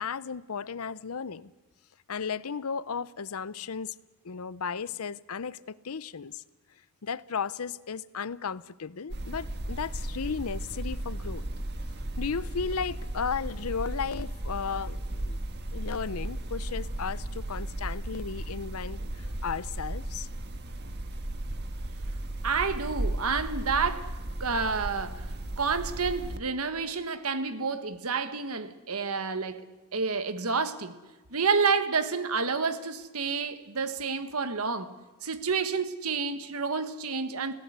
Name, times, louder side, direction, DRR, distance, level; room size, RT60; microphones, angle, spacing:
voice 1, 0.0-1.5 2.1-3.9 4.2-6.4 7.0-11.4 12.2-15.4 15.7-20.3, left 6 dB, 75° left, 0.7 m, -35 dB
sound 1, 9.1-26.4, right 1 dB, 50° right, 1.5 m, -35 dB
voice 2, 22.4-24.1 24.4-25.2 25.6-29.6 29.9-30.9 31.3-34.9 35.2-37.5, right 5 dB, 75° right, 1.5 m, -29 dB
27.0 x 17.0 x 8.1 m
head